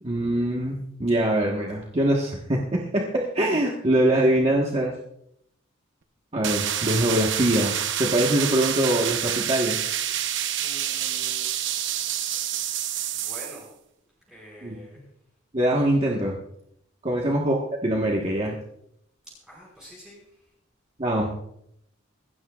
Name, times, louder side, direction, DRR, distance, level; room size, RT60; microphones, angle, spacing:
voice 1, 0.0-4.9 6.3-9.8 14.6-14.8 15.5-16.3 17.0-18.5 21.0-21.3, right 1 dB, 30° right, -2 dB, 1.4 m, -23 dB
sound 1, 6.4-13.6, right 10 dB, 60° right, 0.9 m, -28 dB
voice 2, 10.6-13.7 14.3-15.0 17.1-17.3 19.2-20.5, equal, 5° right, -6 dB, 5.3 m, -47 dB
25.5 x 13.0 x 2.4 m, 0.74 s
head